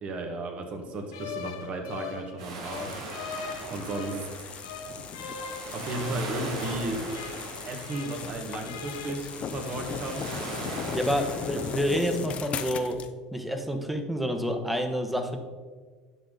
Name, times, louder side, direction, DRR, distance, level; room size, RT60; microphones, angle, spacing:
voice 1, 0.0-3.0 3.7-4.3 5.7-7.0 7.4-10.3 11.6-11.7, right 2 dB, 45° right, 4 dB, 1.8 m, -34 dB
sound 1, 1.1-4.3 4.6-8.3 8.6-9.1, left 6 dB, 85° left, 1.2 m, -41 dB
sound 2, 2.4-12.8, right 3 dB, 85° right, 1.9 m, -40 dB
sound 3, 2.7-13.1, left 7 dB, 45° left, 0.7 m, -38 dB
voice 2, 10.9-13.0 13.3-15.4, equal, 5° right, 6 dB, 1.2 m, -28 dB
10.0 x 6.6 x 4.0 m, 1.5 s
hypercardioid pair, 85°, 3 cm